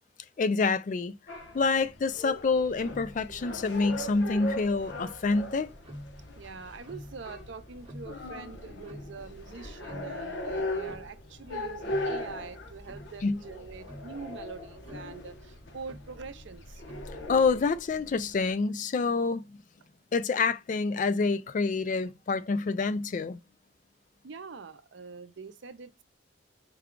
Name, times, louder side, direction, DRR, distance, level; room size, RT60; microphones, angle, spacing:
voice 1, 0.4-1.2 1.5-5.7 13.2-13.4 17.3-19.6 20.1-23.4, left 4 dB, 40° left, 0.3 m, -27 dB
sound 1, 1.3-18.5, left 1 dB, 65° left, 0.9 m, -39 dB
Tick-tock, 2.5-17.7, equal, 30° right, 0.9 m, -49 dB
voice 2, 6.3-16.8 24.2-26.0, right 4 dB, 70° right, 0.5 m, -44 dB
4.7 x 2.2 x 3.6 m
head